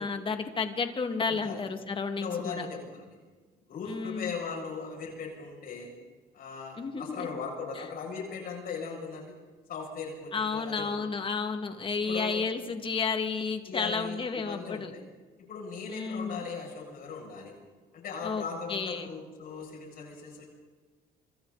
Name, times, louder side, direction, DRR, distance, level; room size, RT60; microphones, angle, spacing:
voice 1, 0.0-2.7 3.9-4.3 6.8-7.3 7.8-7.9 10.3-14.9 15.9-16.4 18.2-18.4 18.7-19.1, left 5 dB, 30° left, 6 dB, 2.6 m, -32 dB
voice 2, 1.3-1.6 2.2-3.1 3.7-5.9 6.3-9.3 9.7-11.1 12.1-12.4 13.6-15.0 15.4-17.5 17.9-20.4, left 5 dB, 60° left, -1 dB, 7.7 m, -38 dB
26.5 x 26.0 x 4.3 m, 1.3 s
cardioid pair, 110°, 17 cm